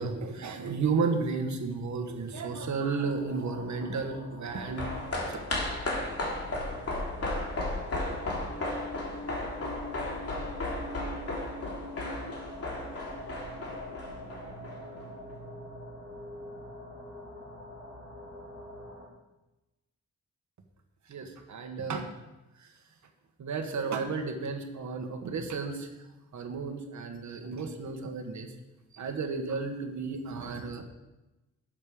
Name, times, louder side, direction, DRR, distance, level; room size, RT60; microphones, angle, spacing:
voice 1, 0.0-4.9 21.1-22.1 23.4-25.9 26.3-28.5 28.9-30.8, right 4 dB, 75° right, 4 dB, 1.5 m, -33 dB
sound 1, 3.0-19.1, left 1 dB, 70° left, 4.6 m, -44 dB
sound 2, 4.4-15.0 15.3-15.4, left 2 dB, 55° left, 2.8 m, -35 dB
12.0 x 7.6 x 5.1 m, 1.0 s
wide cardioid pair, 135°, 30 cm